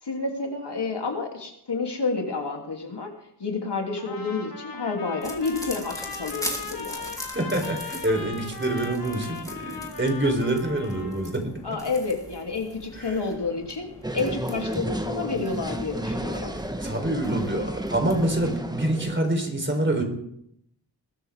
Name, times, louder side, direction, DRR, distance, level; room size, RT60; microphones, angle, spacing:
voice 1, 0.0-3.1 3.4-7.0 11.6-13.9 14.1-16.5, left 4 dB, 70° left, 1 dB, 3.0 m, -29 dB
Trumpet, 4.0-11.3, left 4 dB, 55° left, 2.1 m, -38 dB
sound 1, 5.2-18.6, left 1 dB, 10° left, 3.3 m, -41 dB
voice 2, 7.3-11.8 13.0-13.1 16.8-20.0, right 1 dB, 25° right, 4 dB, 3.8 m, -26 dB
sound 2, 14.0-19.2, right 1 dB, 10° right, 1.2 m, -32 dB
21.5 x 13.0 x 3.6 m, 0.72 s
wide cardioid pair, 80°, 42 cm